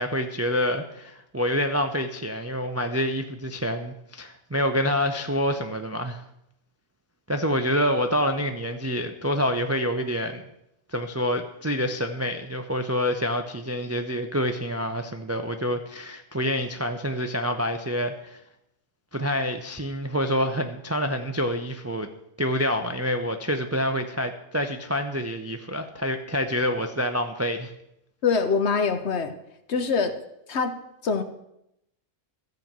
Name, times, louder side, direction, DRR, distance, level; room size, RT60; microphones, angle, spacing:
voice 1, 0.0-6.2 7.3-10.4 10.9-18.4 19.1-22.1 22.4-27.7, equal, 20° right, 6 dB, 0.4 m, -27 dB
voice 2, 28.2-29.3 29.7-30.2 30.5-30.7 31.0-31.2, left 5 dB, 60° left, 9 dB, 1.1 m, -24 dB
13.5 x 5.3 x 7.4 m, 0.83 s
omnidirectional pair, 1.4 m